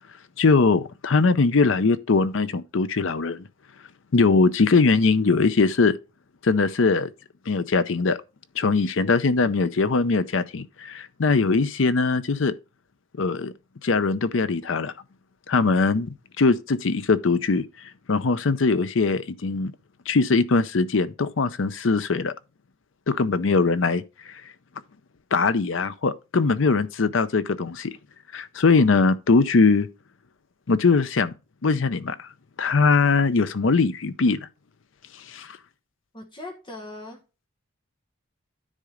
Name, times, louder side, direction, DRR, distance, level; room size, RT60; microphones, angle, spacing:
voice 1, 0.4-3.4 4.1-6.0 6.4-7.1 7.5-8.2 8.6-12.5 13.2-13.5 13.8-14.9 15.5-17.6 18.1-19.7 20.1-22.3 23.1-24.0 25.3-28.0 28.3-29.9 30.7-31.3 31.6-32.3 32.6-34.5 35.3-35.6, left 4 dB, 75° left, 0.6 m, -21 dB
voice 2, 36.1-37.2, left 2 dB, 25° left, 1.3 m, -39 dB
9.9 x 3.8 x 5.0 m
head